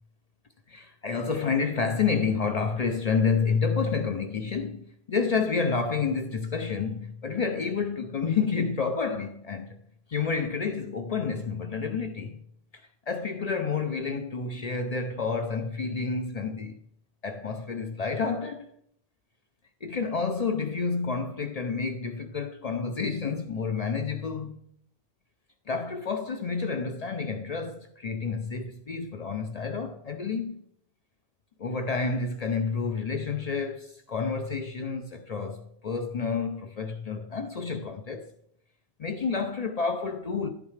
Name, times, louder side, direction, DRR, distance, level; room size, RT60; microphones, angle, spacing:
voice 1, 0.7-9.8 10.1-12.4 13.1-16.8 17.2-18.7 19.8-24.6 25.7-30.6 31.6-38.3 39.0-40.5, left 5 dB, 45° left, 0.5 m, -29 dB
10.5 x 8.6 x 3.2 m
omnidirectional pair, 1.1 m